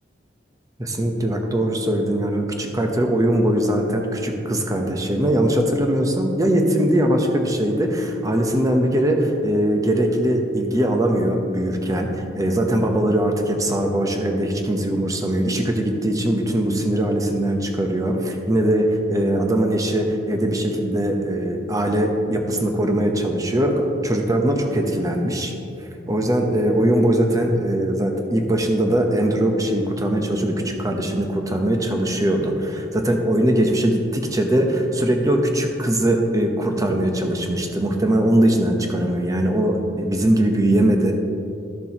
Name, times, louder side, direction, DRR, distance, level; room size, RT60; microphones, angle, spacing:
voice 1, 0.8-25.5 26.1-41.1, right 1 dB, 20° right, 3 dB, 0.8 m, -21 dB
13.5 x 6.8 x 2.9 m, 2.7 s
head